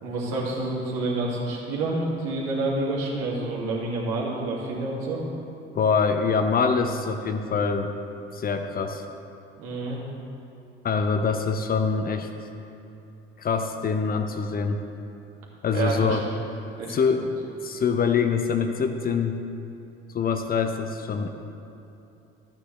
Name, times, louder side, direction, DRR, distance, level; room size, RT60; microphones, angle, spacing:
voice 1, 0.0-5.2 9.6-10.0 15.7-16.2 16.8-17.2, right 2 dB, 65° right, -4 dB, 2.3 m, -28 dB
voice 2, 5.8-7.9 8.3-9.0 10.8-12.3 13.4-14.8 15.6-16.2 16.9-17.3 17.6-19.4 20.1-21.3, left 5 dB, 30° left, 7 dB, 0.7 m, -24 dB
13.0 x 8.6 x 3.2 m, 2.8 s
figure-of-eight pair, 60°, 30 cm